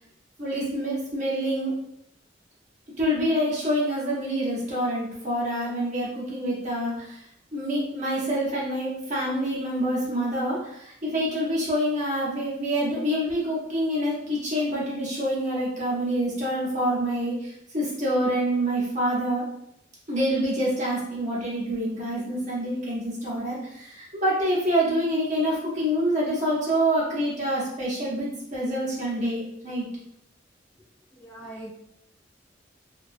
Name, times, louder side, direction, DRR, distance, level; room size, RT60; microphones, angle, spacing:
voice 1, 0.4-1.7 3.0-7.2 7.5-19.5 20.1-29.9, equal, 40° right, -6 dB, 0.9 m, -26 dB
voice 2, 31.1-31.7, right 1 dB, 10° left, -8 dB, 0.8 m, -41 dB
2.9 x 2.3 x 2.5 m, 0.75 s
head